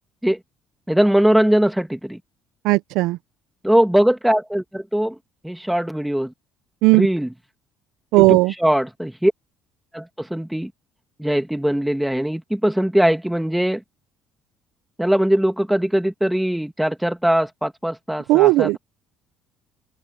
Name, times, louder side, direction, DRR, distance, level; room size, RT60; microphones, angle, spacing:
voice 1, 0.9-2.2 3.6-5.1 5.4-6.3 6.9-7.3 8.2-9.3 9.9-10.7 11.2-13.8 15.0-18.8, equal, 5° right, 1.6 m, -20 dB
voice 2, 2.6-3.2 6.8-7.1 8.1-8.5 18.3-18.8, right 21 dB, 85° right, 0.4 m, -15 dB
open air
cardioid pair, 150°, 0 cm